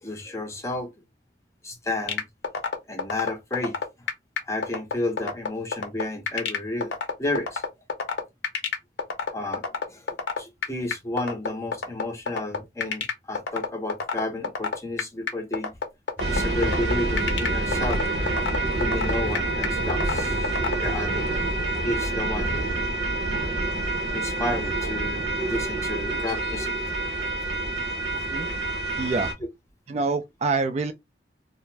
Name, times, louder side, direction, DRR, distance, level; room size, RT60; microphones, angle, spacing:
voice 1, 0.0-0.9 1.6-2.2 2.9-3.8 4.5-7.6 9.3-10.1 10.4-15.7 16.3-18.0 18.8-21.3 21.8-22.8 24.1-26.8, left 2 dB, 15° left, 0.6 m, -32 dB
sound 1, 2.1-20.8, left 5 dB, 85° left, 0.6 m, -27 dB
sound 2, 16.2-21.4, left 1 dB, 10° right, 0.9 m, -41 dB
sound 3, 16.2-29.3, right 2 dB, 75° right, 0.8 m, -27 dB
voice 2, 29.0-29.3 29.9-30.9, right 3 dB, 40° right, 0.3 m, -26 dB
2.5 x 2.1 x 3.1 m
head